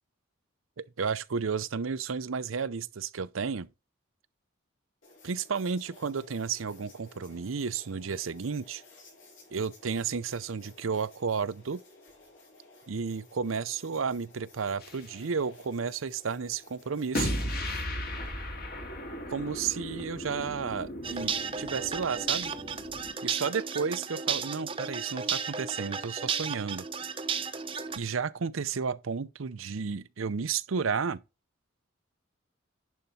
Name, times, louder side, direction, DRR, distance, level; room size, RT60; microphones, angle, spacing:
voice 1, 0.8-3.7 5.2-8.8 9.5-11.8 12.9-17.4 19.3-22.5 23.2-26.8 27.9-31.2, right 5 dB, 80° right, 0.6 m, -32 dB
sound 1, 5.0-18.3, left 2 dB, 70° left, 5.3 m, -56 dB
sound 2, 14.8-15.1 17.1-23.1, equal, 50° left, 2.1 m, -36 dB
sound 3, 21.0-28.0, right 6 dB, 25° right, 0.8 m, -34 dB
11.0 x 4.5 x 4.2 m
head